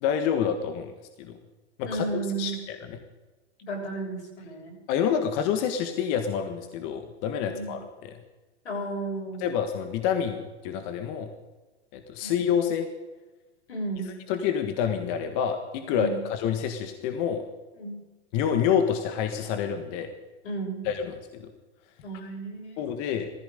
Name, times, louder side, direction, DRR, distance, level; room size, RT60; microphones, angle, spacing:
voice 1, 0.0-0.9 1.2-1.4 1.8-3.0 4.9-8.1 9.4-11.3 11.9-12.9 14.3-17.4 18.3-20.1 20.8-21.5 22.8-23.3, left 8 dB, 40° left, 7 dB, 1.6 m, -28 dB
voice 2, 1.8-2.6 3.6-4.8 7.4-7.8 8.6-9.4 12.2-12.3 13.7-14.1 15.9-16.2 17.8-18.0 20.4-20.8 22.0-22.9, right 2 dB, 90° left, 0 dB, 6.9 m, -33 dB
18.0 x 15.0 x 5.2 m, 1.2 s
hypercardioid pair, 135°, 33 cm